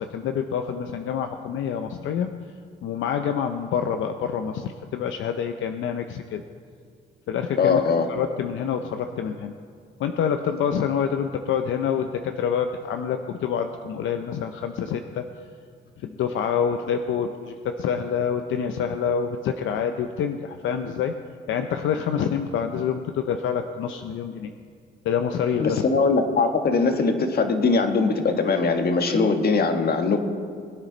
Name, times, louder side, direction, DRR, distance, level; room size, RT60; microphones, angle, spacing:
voice 1, 0.0-2.3 2.8-6.4 7.3-7.8 8.1-9.5 10.0-15.2 16.0-21.1 21.5-24.5 25.0-25.8, left 7 dB, 80° left, 7 dB, 0.7 m, -27 dB
voice 2, 7.6-8.0 25.6-30.2, left 4 dB, 50° left, 6 dB, 1.5 m, -21 dB
22.0 x 9.2 x 4.0 m, 2.2 s
cardioid pair, 90°, 20 cm